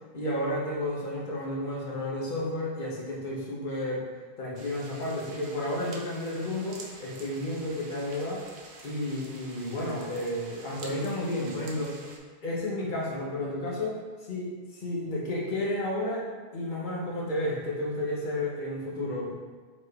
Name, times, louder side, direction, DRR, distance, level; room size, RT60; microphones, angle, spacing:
voice 1, 0.1-4.0 4.4-8.4 8.8-12.0 12.4-16.3 16.5-19.3, left 1 dB, 50° left, -3 dB, 0.9 m, -32 dB
sound 1, 4.6-12.2, right 3 dB, 90° right, 0.9 m, -48 dB
4.0 x 3.1 x 3.2 m, 1.4 s
omnidirectional pair, 1.1 m